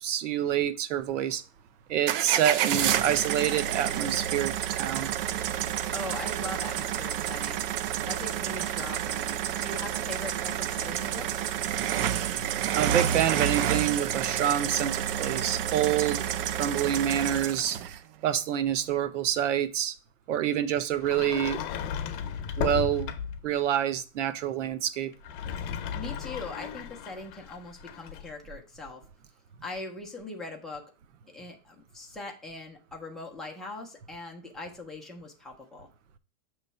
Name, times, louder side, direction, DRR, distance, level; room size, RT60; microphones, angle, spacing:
voice 1, 0.0-1.4 1.9-5.1 12.8-16.3 16.6-17.8 18.2-19.9 20.3-21.6 22.6-23.1 23.4-25.1, right 10 dB, 85° right, 13 dB, 0.8 m, -27 dB
sound 1, 2.1-18.0, right 10 dB, 50° right, 0.5 m, -29 dB
voice 2, 5.9-7.7 8.0-11.5 25.9-29.0 29.6-30.9 31.3-35.9, left 2 dB, ahead, -2 dB, 0.5 m, -41 dB
Sliding door, 21.0-23.5 25.1-28.3, left 8 dB, 45° left, 0.7 m, -35 dB
6.5 x 3.1 x 5.4 m, 0.36 s
supercardioid pair, 165°, 36 cm